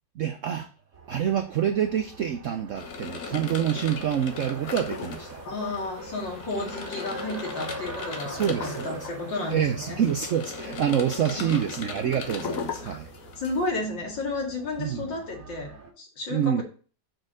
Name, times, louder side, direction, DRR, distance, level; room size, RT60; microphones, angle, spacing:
voice 1, 0.2-0.7 1.1-5.4 8.2-9.1 9.5-13.1 14.8-15.1 16.3-16.6, right 9 dB, 70° right, 0.7 m, -27 dB
Race car auto racing, 0.9-15.9, right 2 dB, 50° right, 2.3 m, -43 dB
sound 1, 2.7-13.7, left 6 dB, 55° left, 1.2 m, -38 dB
voice 2, 5.4-10.0 11.4-11.7 12.8-13.0 13.4-16.6, left 2 dB, 75° left, 3.0 m, -32 dB
6.3 x 4.3 x 6.3 m
omnidirectional pair, 2.0 m